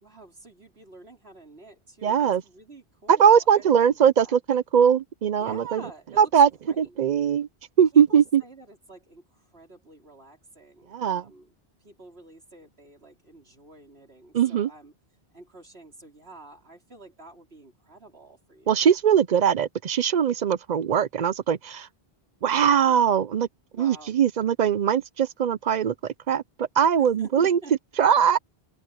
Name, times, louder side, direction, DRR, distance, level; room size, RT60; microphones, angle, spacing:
voice 1, 0.0-4.4 5.4-6.3 6.6-7.0 7.9-11.5 11.8-14.9 15.3-19.0 22.8-23.2 23.7-24.2 27.0-28.0, right 3 dB, 80° right, 4.3 m, -48 dB
voice 2, 2.0-2.4 3.1-5.8 6.2-6.5 6.8-7.5 7.8-8.4 10.9-11.2 14.3-14.7 18.7-21.9 22.4-23.5 23.8-27.6 28.0-28.4, right 8 dB, 55° right, 0.6 m, -21 dB
open air
omnidirectional pair, 1.0 m